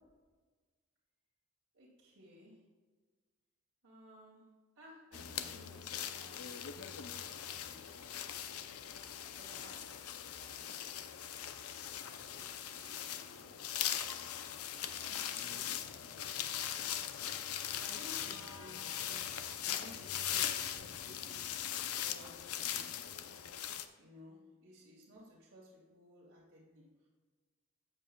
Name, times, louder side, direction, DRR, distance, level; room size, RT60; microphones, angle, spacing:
voice 1, 1.7-2.6 3.8-4.5 4.8-6.5 7.0-8.2 9.3-10.9 12.1-13.6 14.6-17.2 17.8-21.4 22.0-22.9 24.0-27.1, equal, 70° right, -8 dB, 2.4 m, -58 dB
sound 1, 5.1-23.9, left 10 dB, 90° left, 0.6 m, -40 dB
13.5 x 7.6 x 2.3 m, 1.4 s
head